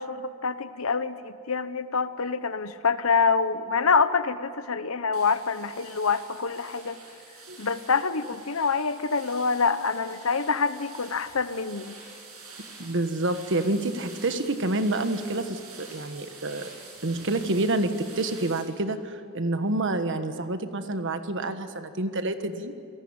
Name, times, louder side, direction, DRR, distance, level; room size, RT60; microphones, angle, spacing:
voice 1, 0.0-7.0 7.6-12.0, left 5 dB, 75° left, 13 dB, 1.0 m, -26 dB
sound 1, 5.1-18.6, right 4 dB, 85° right, 7.3 m, -47 dB
voice 2, 12.8-16.7 17.0-22.8, right 2 dB, 60° right, 9 dB, 1.5 m, -28 dB
27.0 x 18.5 x 8.9 m, 2.4 s
head